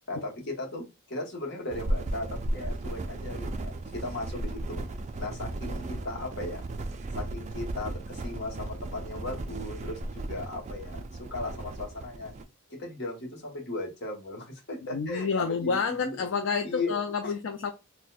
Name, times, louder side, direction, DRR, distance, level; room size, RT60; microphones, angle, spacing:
voice 1, 0.1-4.8 5.2-6.6 7.2-12.3 12.7-15.8 16.0-16.2 16.6-16.9 17.2-17.3, left 2 dB, 55° left, 1.1 m, -37 dB
sound 1, 1.7-12.4, right 1 dB, 35° right, 0.3 m, -35 dB
voice 2, 14.9-17.7, left 5 dB, 70° left, 0.4 m, -29 dB
4.1 x 2.1 x 2.3 m
head